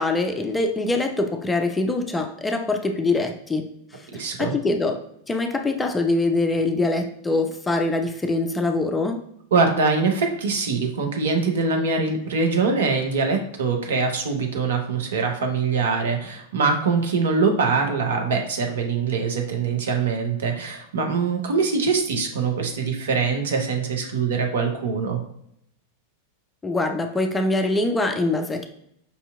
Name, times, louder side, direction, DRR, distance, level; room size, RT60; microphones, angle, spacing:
voice 1, 0.0-3.7 3.9-4.1 4.4-9.2 26.6-28.7, left 2 dB, 10° left, 4 dB, 0.4 m, -24 dB
voice 2, 4.1-4.5 9.5-25.2, right 4 dB, 60° right, 3 dB, 0.6 m, -23 dB
5.4 x 2.8 x 2.2 m, 0.73 s
figure-of-eight pair, 90°, 0 cm